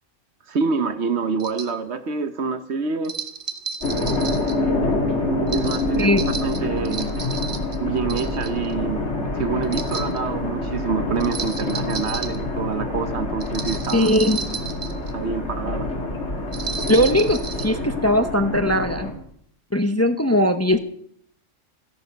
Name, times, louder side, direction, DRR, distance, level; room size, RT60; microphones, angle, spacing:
voice 1, 0.5-3.1 5.5-6.1 6.4-7.2 7.8-14.1 15.1-15.9, right 5 dB, 60° right, 11 dB, 1.2 m, -27 dB
sound 1, 1.4-1.7 3.0-4.6 5.5-7.8 8.1-8.7 9.6-10.2 11.2-12.4 13.4-15.1 16.5-17.7, right 5 dB, 40° right, 1.4 m, -33 dB
sound 2, 3.8-19.1, left 2 dB, 60° left, 3.0 m, -26 dB
voice 2, 13.9-14.6 16.9-19.1 19.7-20.8, left 1 dB, 15° left, 8 dB, 0.7 m, -19 dB
15.5 x 11.5 x 5.2 m, 0.66 s
omnidirectional pair, 1.3 m